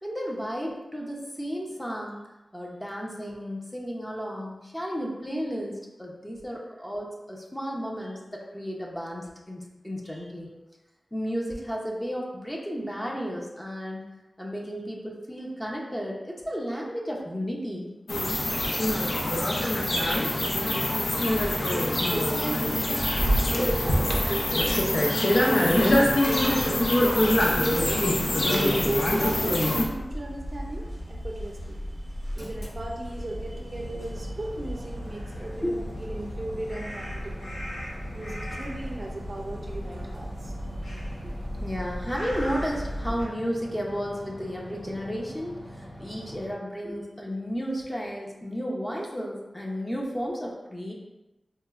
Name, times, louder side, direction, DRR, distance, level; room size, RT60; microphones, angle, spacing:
voice 1, 0.0-2.3 2.5-10.5 11.1-14.0 14.4-17.9 35.6-35.8 41.2-41.3 41.6-50.9, equal, 15° left, -2 dB, 0.6 m, -33 dB
sound 1, 18.1-29.8, left 1 dB, 70° left, 0.5 m, -24 dB
voice 2, 20.6-21.3 21.7-28.0 28.7-37.5 38.1-40.5, right 1 dB, 55° right, 0 dB, 0.5 m, -37 dB
sound 2, 25.6-43.2, equal, 85° left, 1.2 m, -37 dB
sound 3, 32.4-46.5, equal, 45° left, 1.2 m, -44 dB
4.2 x 2.1 x 2.3 m, 1.0 s
wide cardioid pair, 60°, 0 cm